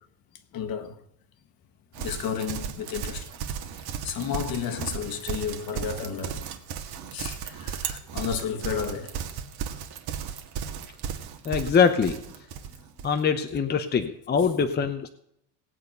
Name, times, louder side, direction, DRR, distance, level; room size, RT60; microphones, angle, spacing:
voice 1, 0.5-0.9 2.0-3.3 4.0-6.4 7.1-9.2 13.5-13.6, left 7 dB, 50° left, 1.5 m, -32 dB
Livestock farm animals working animals, 1.9-13.1, right 8 dB, 60° right, 1.6 m, -35 dB
voice 2, 11.4-12.3 13.0-15.1, left 6 dB, 20° left, 0.8 m, -23 dB
18.0 x 8.7 x 5.4 m
cardioid pair, 155°, 45 cm